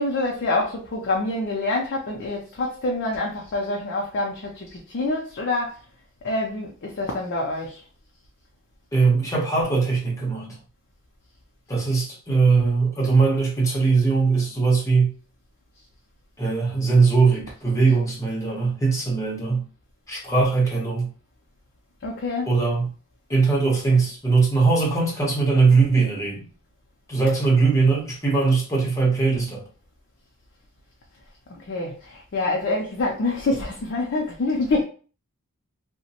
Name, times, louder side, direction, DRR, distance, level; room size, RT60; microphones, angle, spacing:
voice 1, 0.0-5.8 6.2-7.8 22.0-22.5 31.5-34.8, left 2 dB, 55° left, -1 dB, 0.5 m, -26 dB
voice 2, 8.9-10.6 11.7-15.1 16.4-19.7 20.1-21.1 22.5-22.9 23.3-26.4 27.1-29.6, right 4 dB, 15° left, -3 dB, 0.9 m, -20 dB
2.8 x 2.1 x 2.8 m, 0.39 s
head